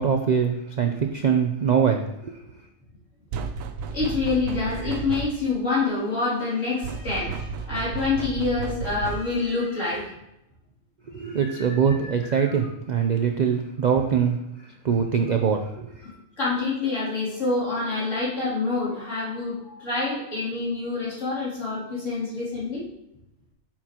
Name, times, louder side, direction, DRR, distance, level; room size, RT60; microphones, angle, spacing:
voice 1, 0.0-2.4 11.1-14.4 14.8-16.0, right 7 dB, 60° right, 4 dB, 0.4 m, -23 dB
sound 1, 3.3-5.6 6.8-9.5, right 5 dB, 85° right, 1.0 m, -33 dB
voice 2, 3.9-10.2 11.2-12.6 16.0-22.8, left 3 dB, 70° left, -8 dB, 3.3 m, -27 dB
9.0 x 5.8 x 2.9 m, 0.85 s
omnidirectional pair, 1.4 m